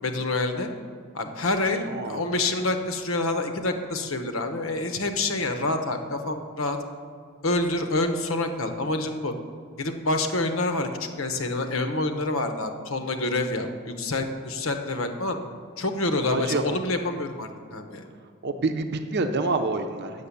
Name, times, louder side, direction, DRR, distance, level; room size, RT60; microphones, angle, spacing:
voice 1, 0.0-0.7 1.1-6.8 7.4-9.3 9.8-15.4 15.8-18.1, left 2 dB, 75° left, 7 dB, 1.0 m, -27 dB
voice 2, 1.9-2.2 16.3-16.6 18.4-20.3, right 3 dB, 55° right, 6 dB, 0.7 m, -27 dB
8.4 x 6.8 x 8.4 m, 2.2 s
head